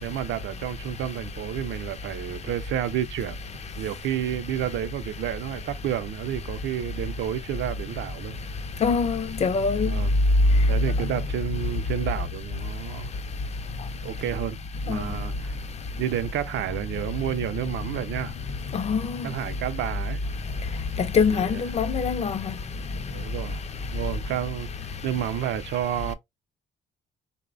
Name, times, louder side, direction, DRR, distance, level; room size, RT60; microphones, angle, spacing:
voice 1, 0.0-3.4 3.8-8.4 9.9-10.1 10.7-13.1 14.0-14.6 14.9-15.5 16.0-18.3 19.2-20.2 21.3-21.6 23.1-23.6 23.9-24.7 25.0-26.1, right 11 dB, 70° right, 0.4 m, -30 dB
voice 2, 8.8-9.9 14.9-15.0 18.7-19.0 21.1-22.5, left 5 dB, 35° left, 0.4 m, -23 dB
3.2 x 2.1 x 2.4 m
cardioid pair, 90°, 20 cm